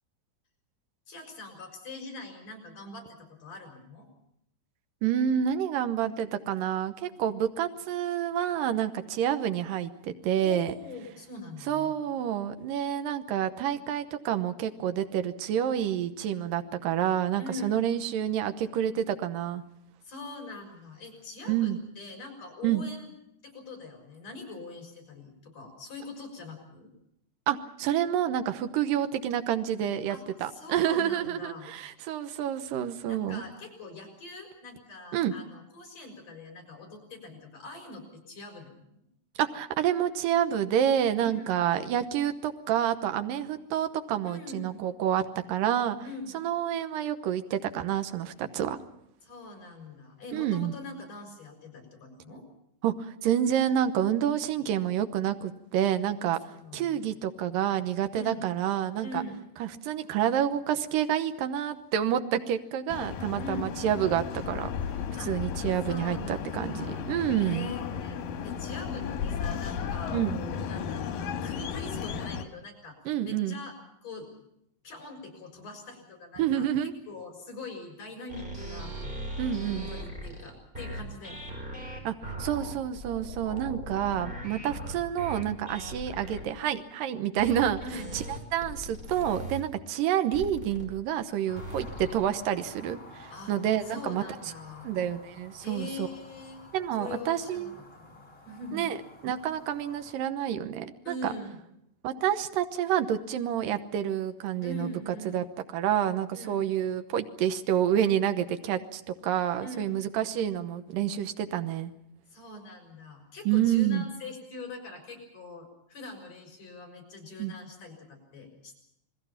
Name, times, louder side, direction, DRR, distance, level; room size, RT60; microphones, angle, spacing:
voice 1, 1.1-4.1 10.4-11.9 17.4-17.8 20.0-23.1 23.4-26.9 30.1-31.7 33.1-39.0 41.2-41.5 44.2-44.8 46.0-46.4 49.2-52.4 56.5-57.0 58.1-58.4 59.0-59.4 63.4-63.7 65.1-65.3 65.9-67.1 67.4-73.0 73.2-73.7 74.0-74.4 74.8-76.7 77.1-78.9 79.8-81.7 87.8-88.1 93.3-93.5 93.8-94.9 95.6-96.6 97.0-98.9 101.0-101.6 104.6-105.5 106.3-106.7 109.6-110.0 112.3-118.7, left 2 dB, 50° left, 2 dB, 7.4 m, -43 dB
voice 2, 5.0-10.7 11.7-19.6 21.5-21.8 22.6-22.8 27.5-33.4 35.1-35.3 39.4-45.2 45.5-46.0 46.3-48.8 50.3-50.7 52.8-56.4 56.7-59.1 59.6-64.7 65.2-67.7 70.1-70.4 73.1-73.6 76.4-76.9 79.4-79.9 82.0-87.8 88.1-88.2 88.5-94.2 94.8-96.1 96.7-97.8 98.7-99.0 99.2-101.3 102.0-104.9 105.3-105.4 105.7-111.9 113.5-114.0 117.4-117.5, right 10 dB, 85° right, 8 dB, 2.8 m, -28 dB
sound 1, 62.9-72.5, left 7 dB, 90° left, 3.1 m, -34 dB
sound 2, 78.3-86.4 87.4-89.6 90.3-90.9 91.6-92.3, equal, 15° right, 5.3 m, -39 dB
sound 3, 91.5-100.1, left 2 dB, 25° left, 6.3 m, -51 dB
28.5 x 20.5 x 5.8 m, 0.76 s
omnidirectional pair, 3.9 m